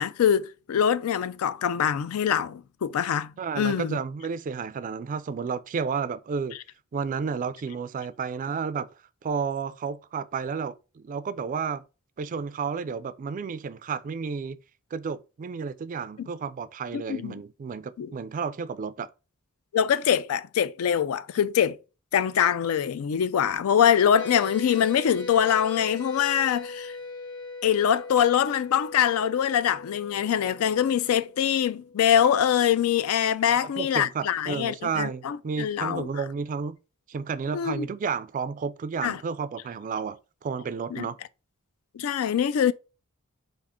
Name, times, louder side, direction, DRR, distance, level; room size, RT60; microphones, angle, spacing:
voice 1, 0.0-4.0 16.2-16.3 16.9-17.3 18.0-18.1 19.7-21.8 22.1-26.9 27.6-36.1 37.5-37.9 39.0-39.2 40.9-41.1 41.9-42.7, left 9 dB, 80° left, 0.3 m, -24 dB
voice 2, 3.4-6.6 6.9-8.9 9.2-11.8 12.2-14.6 14.9-19.1 33.5-36.8 37.1-41.2, right 5 dB, 40° right, 0.3 m, -32 dB
sound 1, 24.2-32.8, left 3 dB, 60° left, 1.3 m, -40 dB
4.9 x 2.4 x 3.5 m
head